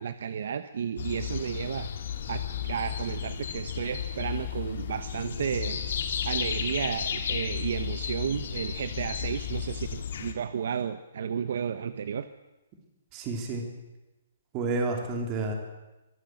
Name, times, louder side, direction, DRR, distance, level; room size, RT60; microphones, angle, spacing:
voice 1, 0.0-1.9 2.3-5.8 6.2-12.3, right 7 dB, 50° right, 12 dB, 0.9 m, -32 dB
sound 1, 1.0-10.3, left 8 dB, 50° left, 2.2 m, -33 dB
voice 2, 13.1-13.6 14.5-15.5, right 3 dB, 20° right, 3 dB, 3.1 m, -30 dB
23.5 x 14.5 x 7.8 m, 1.1 s
hypercardioid pair, 175°, 0 cm